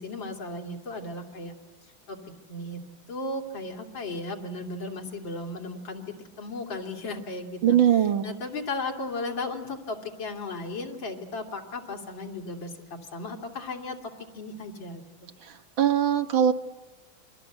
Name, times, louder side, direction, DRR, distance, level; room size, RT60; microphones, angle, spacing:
voice 1, 0.0-1.5 1.8-2.2 2.5-2.8 3.1-15.0, left 2 dB, 75° left, 2 dB, 3.4 m, -36 dB
voice 2, 7.6-8.3 15.8-16.5, right 9 dB, 85° right, 7 dB, 2.1 m, -21 dB
29.5 x 23.0 x 8.0 m, 1.1 s
omnidirectional pair, 2.1 m